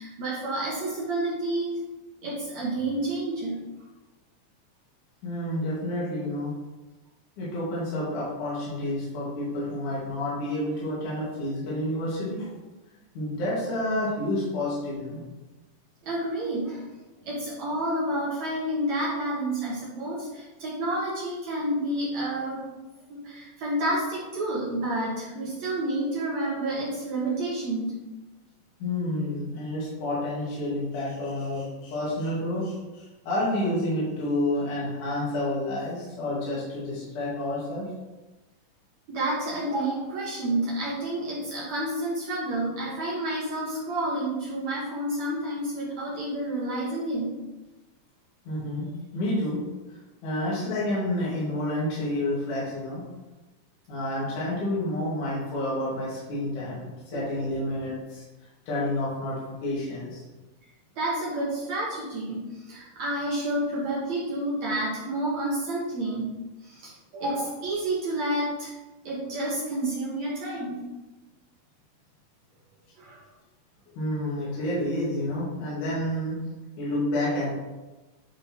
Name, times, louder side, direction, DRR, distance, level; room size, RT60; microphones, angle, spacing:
voice 1, 0.0-1.8 2.2-3.6 16.0-16.8 17.2-22.6 23.1-28.0 39.1-47.4 57.1-57.4 61.0-66.4 66.6-68.7 69.0-70.8 73.0-73.2, right 1 dB, 60° right, -6 dB, 2.4 m, -29 dB
voice 2, 5.2-6.5 7.4-12.5 13.1-15.2 28.8-37.9 48.4-48.9 49.1-49.6 49.9-53.0 53.9-58.2 58.7-60.2 74.0-76.4 76.8-77.5, left 1 dB, 65° left, -7 dB, 3.3 m, -29 dB
9.8 x 5.3 x 2.9 m, 1.1 s
omnidirectional pair, 3.9 m